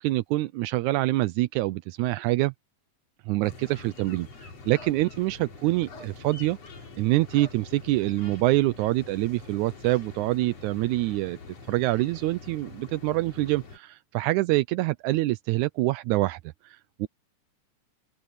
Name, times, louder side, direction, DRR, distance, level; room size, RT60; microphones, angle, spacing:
voice 1, 0.0-2.5 3.3-6.6 7.0-11.4 11.7-16.4 16.6-17.1, right 18 dB, 85° right, 2.0 m, -26 dB
sound 1, 3.4-13.8, left 4 dB, 55° left, 4.5 m, -45 dB
open air
omnidirectional pair, 3.5 m